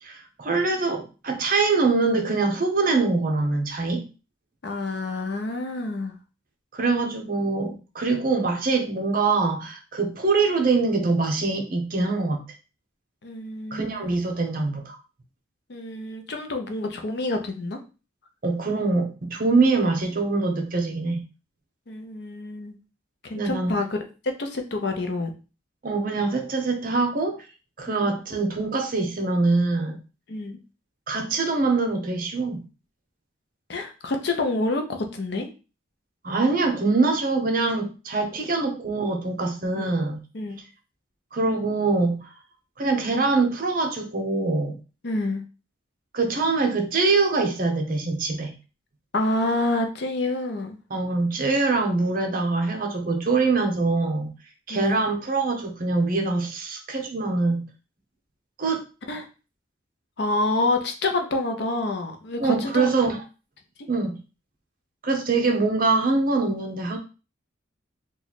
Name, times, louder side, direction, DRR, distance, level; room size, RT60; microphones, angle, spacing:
voice 1, 0.0-4.0 6.7-12.4 13.7-15.0 18.4-21.2 23.3-23.8 25.8-27.4 27.8-30.0 31.1-32.6 36.2-40.2 41.3-42.3 42.8-44.8 46.1-48.5 50.9-54.3 54.7-57.6 58.6-58.8 62.4-63.2 63.9-64.2 65.0-67.0, right 3 dB, 45° right, 4 dB, 0.7 m, -24 dB
voice 2, 4.6-6.1 13.2-14.1 15.7-17.8 21.9-22.7 23.3-24.0 24.4-25.3 27.9-28.1 30.3-30.6 33.7-35.5 38.4-38.5 39.8-39.9 40.3-40.6 45.0-45.4 49.1-50.8 54.7-55.0 59.1-59.3 60.2-62.9, left 2 dB, 55° left, 5 dB, 0.6 m, -28 dB
3.0 x 2.4 x 4.0 m, 0.32 s
head